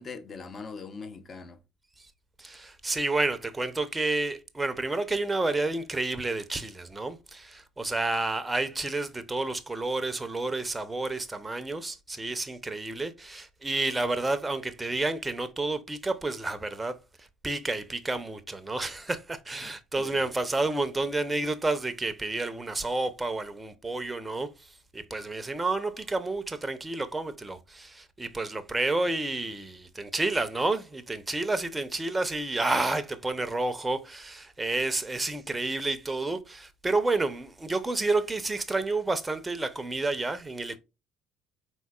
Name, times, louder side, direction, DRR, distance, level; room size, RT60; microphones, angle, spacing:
voice 1, 0.0-1.6 19.6-20.2, left 4 dB, 35° left, 0.9 m, -42 dB
voice 2, 2.4-40.8, right 2 dB, 15° right, 0.7 m, -30 dB
4.8 x 3.9 x 2.3 m
hypercardioid pair, 60°, 0 cm